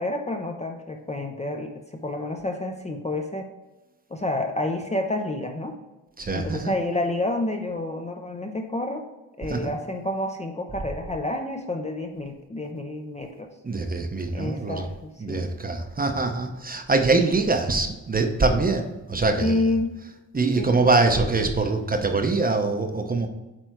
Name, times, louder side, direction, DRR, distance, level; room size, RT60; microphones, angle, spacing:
voice 1, 0.0-3.5 4.1-5.8 6.3-9.1 9.4-13.5 14.3-15.5 19.4-20.0 20.6-20.9, left 1 dB, 15° left, 4 dB, 0.6 m, -29 dB
voice 2, 6.2-6.7 9.5-9.7 13.6-14.8 15.2-19.5 20.3-23.3, right 3 dB, 20° right, 5 dB, 0.7 m, -23 dB
8.9 x 3.4 x 4.6 m, 1.1 s
cardioid pair, 110°, 41 cm